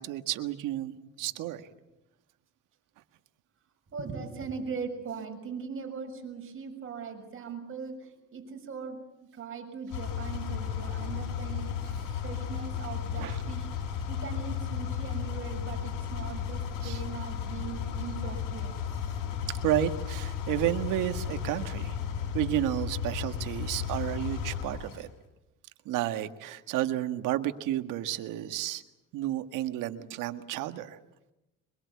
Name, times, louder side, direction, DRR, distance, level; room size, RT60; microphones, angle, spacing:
voice 1, 0.0-1.7 13.2-13.4 16.8-17.0 19.6-22.0 22.3-25.1 25.9-28.8 29.1-31.0, right 13 dB, 80° right, 9 dB, 1.8 m, -31 dB
voice 2, 3.9-12.0 12.2-18.7, right 5 dB, 40° right, 3 dB, 6.7 m, -40 dB
sound 1, 9.9-25.0, left 7 dB, 80° left, 6.5 m, -34 dB
24.5 x 22.5 x 8.5 m, 0.94 s
cardioid pair, 100°, 31 cm